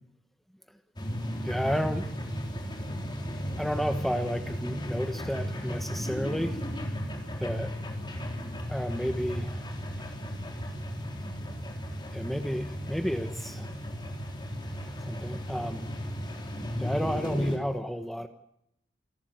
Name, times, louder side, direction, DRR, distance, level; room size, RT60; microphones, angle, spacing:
sound 1, 1.0-17.6, equal, 25° left, 3.7 m, -35 dB
voice 1, 1.4-2.1 2.6-2.8 3.6-6.6 7.4-7.7 8.7-9.7 12.1-13.7 15.0-15.9 16.8-18.3, equal, ahead, 7 dB, 1.1 m, -31 dB
27.5 x 12.0 x 9.2 m, 0.76 s
head